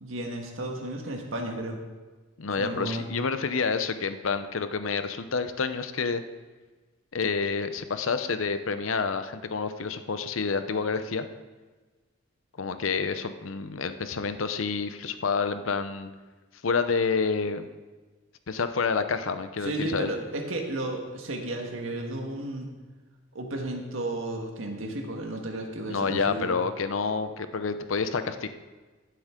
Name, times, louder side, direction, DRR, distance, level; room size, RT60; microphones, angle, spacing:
voice 1, 0.0-1.8 2.6-3.1 19.6-22.7 23.4-26.5, right 1 dB, 80° right, 2 dB, 1.6 m, -33 dB
voice 2, 2.4-6.2 7.1-11.3 12.6-16.1 16.6-17.7 18.5-20.1 25.8-28.5, left 5 dB, 80° left, 10 dB, 0.7 m, -28 dB
15.5 x 7.8 x 3.8 m, 1.3 s
head